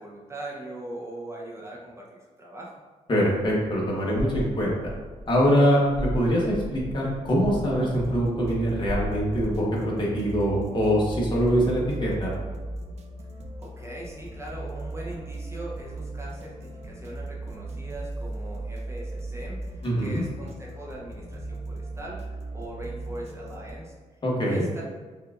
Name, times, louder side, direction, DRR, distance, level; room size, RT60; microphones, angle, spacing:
voice 1, 0.0-2.7 13.6-23.9 24.5-24.8, right 1 dB, 20° right, -4 dB, 0.7 m, -40 dB
voice 2, 3.1-4.7 5.3-12.3 19.8-20.2 24.2-24.7, equal, 35° left, -4 dB, 1.2 m, -23 dB
sound 1, 4.3-9.7, equal, 50° left, 0.8 m, -36 dB
sound 2, 7.9-23.7, right 2 dB, 55° right, 0.5 m, -37 dB
5.6 x 2.4 x 2.4 m, 1.4 s
cardioid pair, 110°, 13 cm